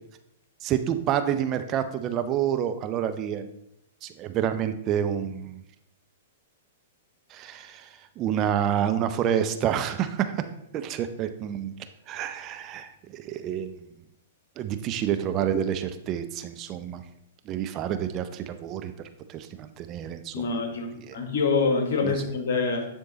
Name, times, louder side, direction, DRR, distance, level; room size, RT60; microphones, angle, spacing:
voice 1, 0.6-3.5 4.0-5.6 7.3-10.3 10.7-11.7 12.1-13.9 14.6-17.0 17.5-18.9 19.3-20.5 21.0-21.2 22.0-22.2, right 9 dB, 35° right, 9 dB, 0.6 m, -28 dB
voice 2, 20.3-22.9, left 4 dB, 65° left, 5 dB, 1.5 m, -26 dB
9.8 x 3.7 x 3.9 m, 0.77 s
hypercardioid pair, 110°, 0 cm